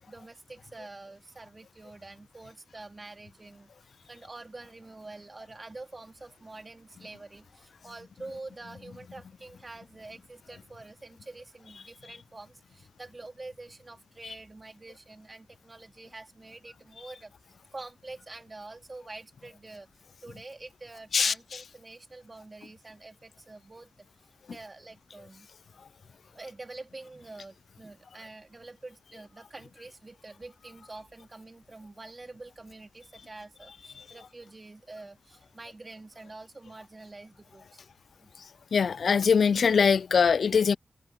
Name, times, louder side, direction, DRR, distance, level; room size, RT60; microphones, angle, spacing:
voice 1, 0.0-3.7 4.1-17.3 17.7-19.9 20.2-23.9 24.5-25.5 26.3-37.8 38.2-38.3, right 2 dB, 45° right, 3.5 m, -46 dB
voice 2, 38.7-40.8, left 6 dB, 80° left, 0.3 m, -22 dB
cardioid pair, 40°, 0 cm